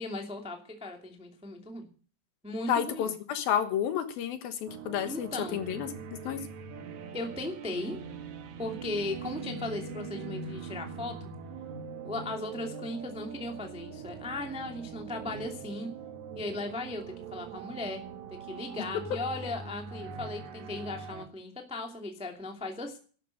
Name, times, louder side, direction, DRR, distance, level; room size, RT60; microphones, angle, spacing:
voice 1, 0.0-1.9 2.4-3.1 5.0-5.6 7.1-8.0 8.6-11.3 12.0-15.9 16.3-18.0 18.3-23.0, left 2 dB, 5° right, 3 dB, 1.1 m, -37 dB
voice 2, 2.7-5.9 6.2-6.4, left 9 dB, 70° left, 9 dB, 2.9 m, -30 dB
sound 1, 4.7-21.3, right 5 dB, 60° right, 2.1 m, -42 dB
12.5 x 11.5 x 6.5 m, 0.40 s
omnidirectional pair, 4.7 m